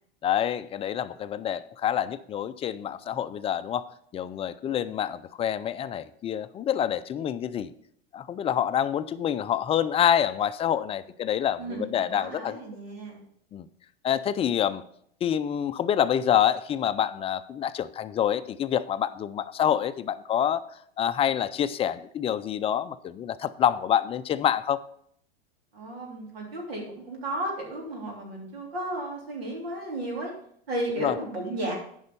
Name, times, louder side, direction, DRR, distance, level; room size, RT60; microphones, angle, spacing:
voice 1, 0.2-3.8 4.1-7.7 8.1-12.6 13.5-13.7 14.0-14.8 15.2-20.6 21.0-24.8 31.0-31.2, left 9 dB, 20° left, 12 dB, 0.4 m, -27 dB
voice 2, 11.6-13.2 25.7-30.3 30.7-31.7, right 1 dB, 85° right, -2 dB, 3.4 m, -34 dB
9.4 x 5.5 x 5.3 m, 0.67 s
hypercardioid pair, 115°, 30 cm